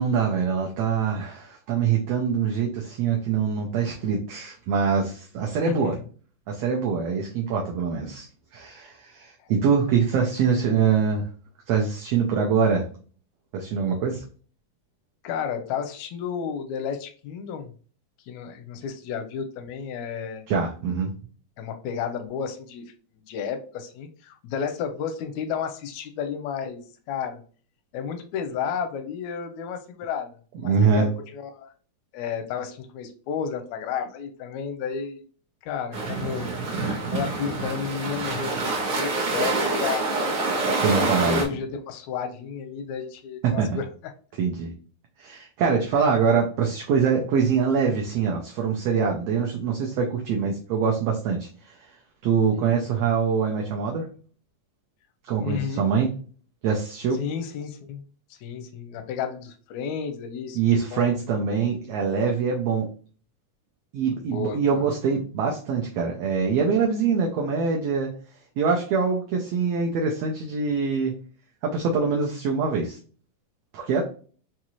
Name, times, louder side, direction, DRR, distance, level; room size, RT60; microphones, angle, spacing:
voice 1, 0.0-5.9 6.5-8.3 8.5-11.2 11.7-12.8 13.5-14.2 20.5-21.1 30.6-31.1 40.8-41.4 43.4-43.8 44.4-44.7 45.2-51.7 52.2-54.1 55.2-56.1 56.6-57.2 60.5-62.9 63.9-68.1 68.6-71.1 71.6-73.0 73.7-74.0, right 6 dB, 75° right, 0 dB, 1.5 m, -24 dB
voice 2, 15.2-17.7 18.3-20.5 21.6-22.8 23.1-26.8 27.1-27.4 27.9-31.7 32.1-35.2 35.6-36.5 37.1-40.1 41.2-43.9 52.6-52.8 55.4-55.9 57.2-58.0 58.3-60.6 60.9-61.1 64.2-64.8, left 7 dB, 80° left, 7 dB, 1.7 m, -32 dB
sound 1, 35.9-41.5, right 3 dB, 60° right, 1.5 m, -26 dB
5.5 x 2.6 x 2.9 m, 0.41 s
omnidirectional pair, 3.6 m